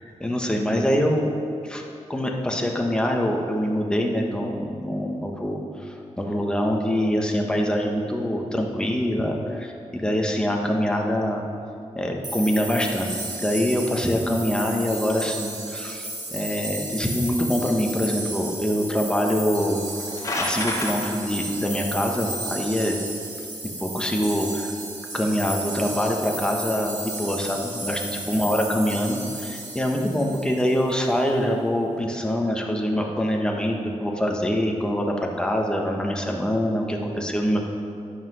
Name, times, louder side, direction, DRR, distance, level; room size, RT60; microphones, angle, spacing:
voice 1, 0.2-1.3 1.6-1.8 2.1-11.4 11.9-19.8 20.4-23.0 23.8-24.7 25.1-28.0 28.3-37.6, equal, 5° left, 0 dB, 1.3 m, -24 dB
sound 1, 12.2-30.9, right 2 dB, 35° right, 2.0 m, -34 dB
sound 2, 19.8-20.9, left 2 dB, 30° left, 1.9 m, -28 dB
11.0 x 7.6 x 6.1 m, 2.6 s
wide cardioid pair, 105°, 12 cm